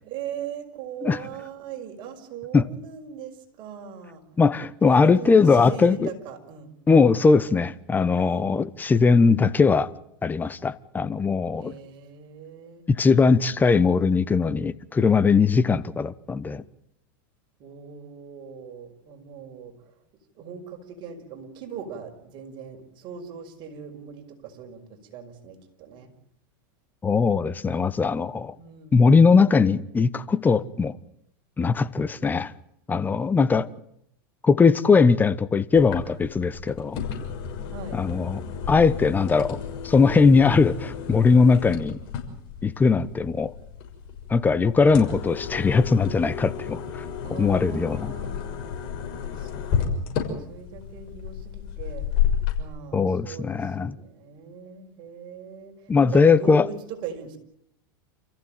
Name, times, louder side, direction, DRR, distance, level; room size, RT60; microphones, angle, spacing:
voice 1, 0.0-4.2 4.8-6.7 8.1-8.5 11.6-12.9 17.6-20.0 20.3-26.1 28.6-29.0 37.7-38.0 47.2-48.4 49.1-52.0 52.6-57.4, right 7 dB, 45° right, 5.7 m, -40 dB
voice 2, 4.4-6.0 6.9-9.9 10.2-11.7 12.9-16.6 27.0-28.5 28.9-30.9 31.6-32.5 32.9-33.7 34.4-37.0 37.9-38.4 38.7-39.6 39.8-42.0 42.6-43.5 44.3-47.0 47.4-48.0 52.9-53.9 55.9-56.7, left 4 dB, 15° left, 1.1 m, -20 dB
sound 1, 35.8-52.6, left 8 dB, 50° left, 6.2 m, -32 dB
29.0 x 15.0 x 9.1 m
hypercardioid pair, 120°, 11 cm